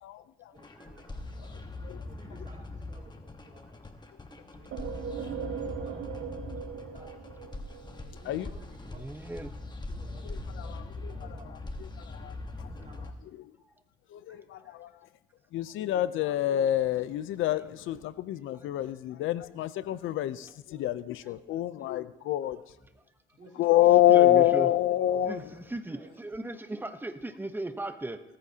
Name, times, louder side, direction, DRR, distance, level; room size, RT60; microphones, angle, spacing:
voice 1, 0.0-0.5 1.8-2.1 8.2-8.5 10.3-11.4 12.0-12.7 13.4-13.5 14.1-14.9 15.5-22.6 23.6-25.5, left 13 dB, 85° left, 15 dB, 0.6 m, -27 dB
voice 2, 0.5-1.6 2.1-3.8 4.3-4.8 5.2-6.7 6.9-7.3 7.9-9.5 9.9-12.0 12.7-13.2 23.4-23.8 24.4-24.6 25.8-26.5, right 2 dB, 35° right, -3 dB, 2.7 m, -56 dB
sound 1, 0.6-13.1, left 2 dB, 20° left, 1.3 m, -42 dB
sound 2, 4.7-8.3, right 7 dB, 80° right, 1.4 m, -39 dB
voice 3, 8.9-9.5 14.6-14.7 24.1-24.7 25.2-28.2, right 2 dB, 10° right, 8 dB, 0.9 m, -37 dB
18.5 x 14.0 x 2.9 m, 0.98 s
cardioid pair, 90°, 20 cm